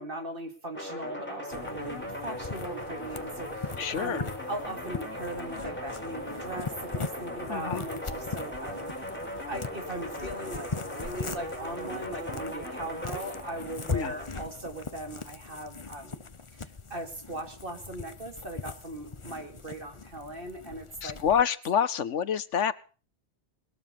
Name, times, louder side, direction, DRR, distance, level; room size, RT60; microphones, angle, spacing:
voice 1, 0.0-8.9 9.5-16.2 16.6-21.2, right 1 dB, 50° right, 6 dB, 2.8 m, -39 dB
sound 1, 0.7-14.5, equal, 10° left, 4.9 m, -39 dB
sound 2, 1.5-21.4, left 4 dB, 30° left, 0.9 m, -40 dB
voice 2, 3.8-4.3 7.5-7.8 13.9-14.1 21.0-22.7, left 8 dB, 85° left, 15 dB, 1.3 m, -27 dB
20.0 x 12.5 x 5.3 m, 0.39 s
omnidirectional pair, 1.2 m